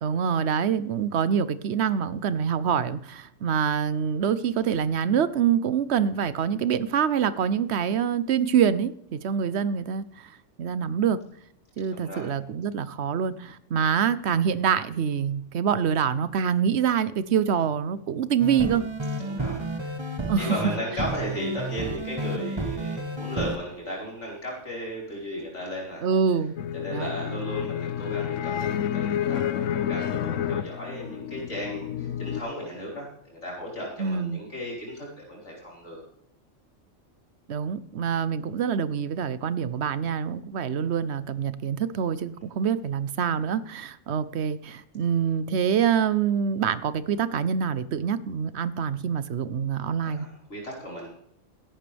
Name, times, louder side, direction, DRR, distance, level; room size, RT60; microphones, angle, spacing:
voice 1, 0.0-10.3 10.6-11.2 11.8-18.9 20.3-20.6 26.0-26.5 26.9-27.1 34.0-34.4 37.5-50.3, right 7 dB, 65° right, 15 dB, 1.0 m, -25 dB
voice 2, 11.9-12.3 19.2-19.9 20.4-26.1 26.7-36.0 50.0-51.1, equal, 70° left, -4 dB, 5.1 m, -35 dB
sound 1, 18.4-23.6, right 1 dB, 25° right, 1.1 m, -31 dB
sound 2, 26.6-32.4, left 9 dB, 90° left, 1.0 m, -29 dB
16.5 x 11.5 x 3.4 m, 0.72 s
omnidirectional pair, 1.3 m